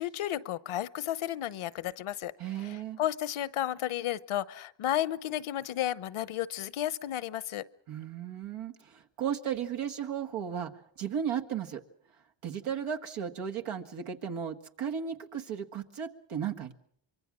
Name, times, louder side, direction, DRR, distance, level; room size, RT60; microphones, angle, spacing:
voice 1, 0.0-2.3 2.6-7.6, left 12 dB, 80° left, 19 dB, 0.9 m, -33 dB
voice 2, 2.4-3.0 7.9-10.7 11.0-11.8 12.4-16.7, right 8 dB, 85° right, 4 dB, 1.8 m, -35 dB
24.5 x 24.0 x 6.2 m, 0.62 s
cardioid pair, 65°, 49 cm